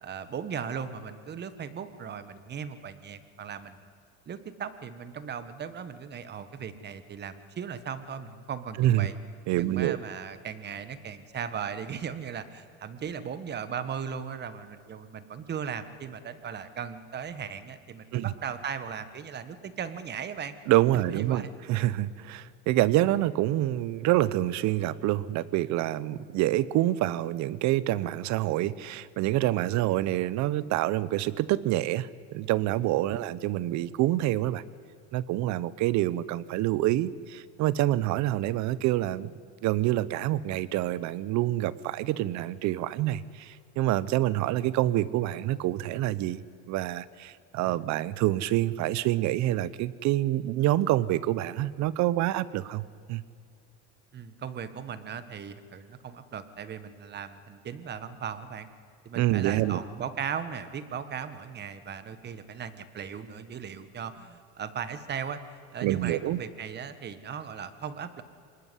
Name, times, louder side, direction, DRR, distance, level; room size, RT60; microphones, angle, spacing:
voice 1, 0.0-3.8 4.3-9.1 9.6-20.5 21.1-21.5 33.1-33.3 54.1-58.7 59.0-65.4 65.7-68.2, right 7 dB, 30° right, 12 dB, 1.5 m, -37 dB
voice 2, 9.5-10.0 18.1-18.3 20.7-34.6 35.1-39.3 39.6-46.4 46.7-53.2 59.2-59.8 65.8-66.4, right 15 dB, 50° right, 19 dB, 0.9 m, -27 dB
25.0 x 20.0 x 10.0 m, 2.3 s
cardioid pair, 140°, 36 cm